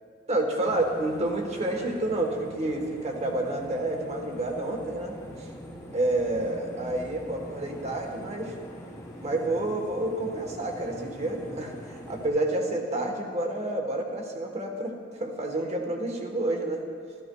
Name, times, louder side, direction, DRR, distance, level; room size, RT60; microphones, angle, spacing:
voice 1, 0.3-5.1 5.9-8.5 9.2-16.8, right 2 dB, 40° right, 2 dB, 1.2 m, -29 dB
sound 1, 0.6-12.3, equal, 20° left, 1.1 m, -43 dB
13.5 x 13.0 x 2.3 m, 2.3 s
head